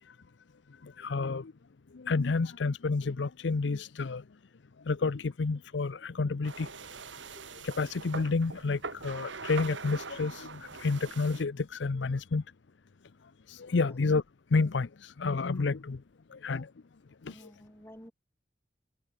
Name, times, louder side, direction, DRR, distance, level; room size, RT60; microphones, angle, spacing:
voice 1, 1.0-1.5 1.9-4.2 4.9-6.7 7.6-12.4 13.6-14.2 14.5-14.9 15.2-16.0 16.3-16.7 17.3-17.4, left 4 dB, 80° left, 0.6 m, -30 dB
sound 1, 6.4-11.4, right 4 dB, 90° right, 2.8 m, -42 dB
voice 2, 17.3-18.1, equal, 15° left, 3.7 m, -51 dB
head